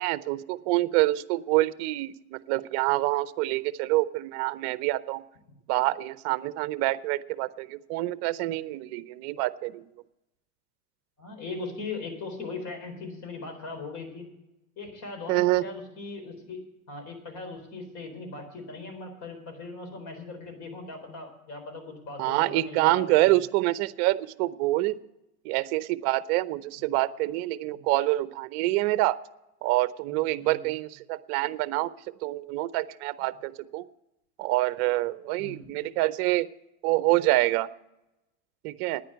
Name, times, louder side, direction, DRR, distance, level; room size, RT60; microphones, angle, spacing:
voice 1, 0.0-5.2 5.7-9.8 15.3-15.6 22.2-25.0 25.4-29.2 29.6-31.9 32.2-33.9 34.4-36.5 36.8-37.7 38.6-39.0, right 18 dB, 50° right, 17 dB, 0.7 m, -26 dB
voice 2, 11.2-14.3 14.8-16.6 16.9-23.4 26.8-26.9 27.7-27.8 30.1-30.7 35.4-35.8, left 3 dB, 40° left, 5 dB, 4.1 m, -39 dB
10.0 x 9.7 x 7.9 m, 0.92 s
hypercardioid pair, 105°, 43 cm